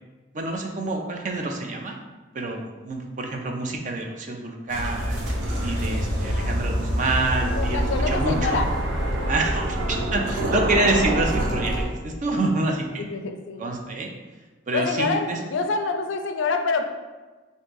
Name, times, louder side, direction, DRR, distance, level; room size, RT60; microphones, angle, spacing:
voice 1, 0.3-2.0 2.3-5.2 5.6-8.7 9.3-13.0 13.6-14.1 14.7-15.4, right 2 dB, 40° right, 2 dB, 0.4 m, -27 dB
sound 1, 4.7-11.8, right 1 dB, 80° right, 0.7 m, -26 dB
voice 2, 6.2-6.7 7.4-8.7 13.0-13.6 14.7-16.9, left 4 dB, 75° left, 6 dB, 0.4 m, -27 dB
3.5 x 2.7 x 3.9 m, 1.2 s
head